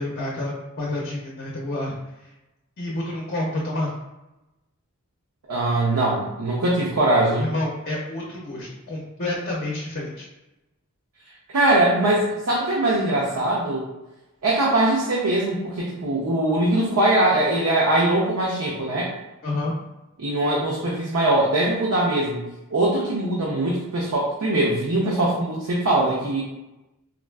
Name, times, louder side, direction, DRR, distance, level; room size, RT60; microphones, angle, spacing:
voice 1, 0.0-2.0 2.8-3.9 7.4-10.3 19.4-19.7, left 1 dB, 45° left, -3 dB, 0.5 m, -29 dB
voice 2, 5.5-7.4 11.5-13.9 14.4-19.1 20.2-22.4 22.7-26.4, right 1 dB, 80° right, -4 dB, 0.6 m, -21 dB
3.7 x 2.3 x 2.2 m, 0.99 s
head